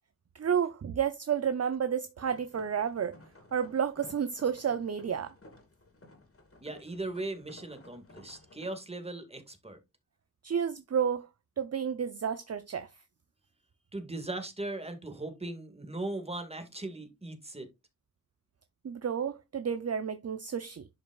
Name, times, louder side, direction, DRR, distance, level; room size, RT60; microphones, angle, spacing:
voice 1, 0.3-3.2 3.5-5.3 10.4-11.3 11.6-12.9 18.8-20.9, right 7 dB, 45° right, 0.6 m, -31 dB
sound 1, 2.2-8.7, left 2 dB, 40° left, 2.9 m, -55 dB
voice 2, 6.6-9.8 13.9-17.7, right 2 dB, 15° right, 2.0 m, -38 dB
11.0 x 5.3 x 2.4 m
wide cardioid pair, 90°, 36 cm